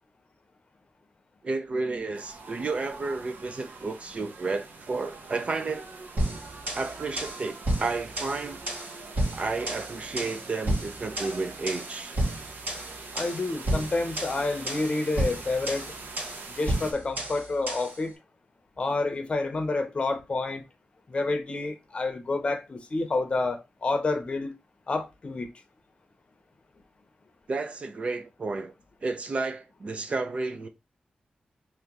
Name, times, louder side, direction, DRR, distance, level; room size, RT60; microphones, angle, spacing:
voice 1, 1.4-5.9 6.7-8.6 9.3-12.2 27.5-28.7 29.0-30.7, right 3 dB, 45° right, 0.5 m, -32 dB
sound 1, 2.1-16.9, right 3 dB, 90° right, 0.8 m, -44 dB
sound 2, 6.2-18.0, right 1 dB, 60° right, 1.9 m, -32 dB
voice 2, 13.1-15.9 16.6-18.1 18.8-20.6 21.1-24.5 24.9-25.5, left 3 dB, 40° left, 0.7 m, -29 dB
3.2 x 2.9 x 3.5 m
wide cardioid pair, 125°, 3 cm